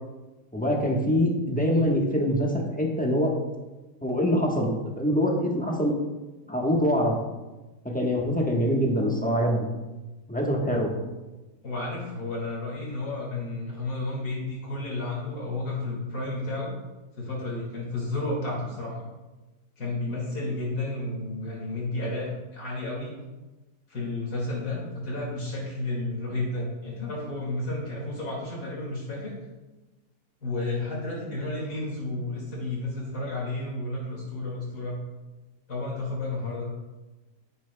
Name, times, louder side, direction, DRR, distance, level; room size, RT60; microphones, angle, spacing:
voice 1, 0.5-3.3 4.0-5.9 6.5-7.2 7.8-9.6 10.3-10.9, equal, 5° left, -1 dB, 0.9 m, -24 dB
voice 2, 11.6-16.7 17.2-19.0 19.8-23.1 23.9-29.3 30.4-35.0 35.7-36.7, left 2 dB, 75° left, -5 dB, 2.7 m, -32 dB
9.9 x 8.6 x 2.2 m, 1.1 s
omnidirectional pair, 1.7 m